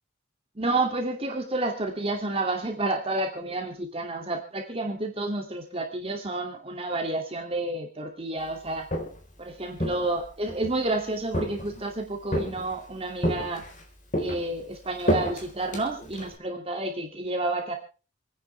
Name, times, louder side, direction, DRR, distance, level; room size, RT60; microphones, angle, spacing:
voice 1, 0.6-8.9 9.4-13.6 14.2-17.7, right 2 dB, 30° right, 3 dB, 2.5 m, -30 dB
Walk footsteps, 8.7-9.3 9.8-10.8 11.3-11.9 12.3-12.9 13.2-13.8 14.1-16.4, equal, 40° left, 4.2 m, -30 dB
28.5 x 10.5 x 3.4 m, 0.36 s
head